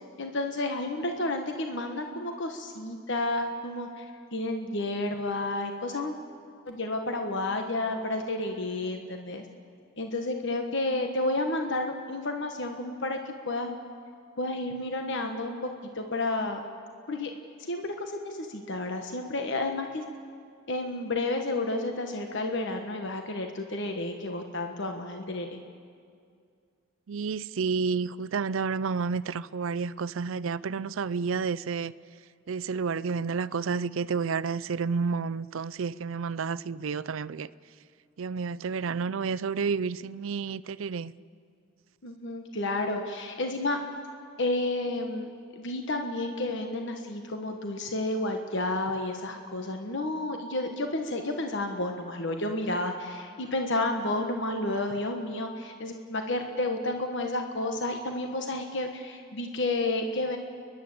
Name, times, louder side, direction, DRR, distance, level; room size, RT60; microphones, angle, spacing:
voice 1, 0.2-6.1 6.7-9.4 10.0-13.8 14.4-16.6 17.1-17.3 17.6-20.0 20.7-25.6 42.0-43.8 44.4-60.4, left 2 dB, 60° left, 1.3 m, -31 dB
voice 2, 27.1-31.9 32.5-37.5 38.2-41.1, right 5 dB, 70° right, 0.5 m, -30 dB
30.0 x 11.5 x 7.7 m
head